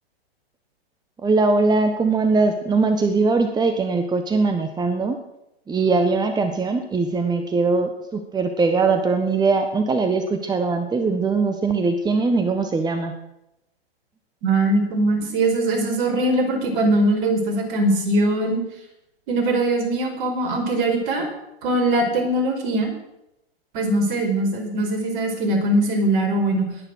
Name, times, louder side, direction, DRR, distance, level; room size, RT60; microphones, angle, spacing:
voice 1, 1.2-5.2 5.7-13.1, right 3 dB, 15° right, 8 dB, 1.4 m, -21 dB
voice 2, 14.4-18.6 19.3-21.3 21.6-22.9 23.7-26.7, right 1 dB, 50° right, 3 dB, 5.1 m, -21 dB
21.0 x 9.7 x 6.3 m, 0.88 s
hypercardioid pair, 110°, 31 cm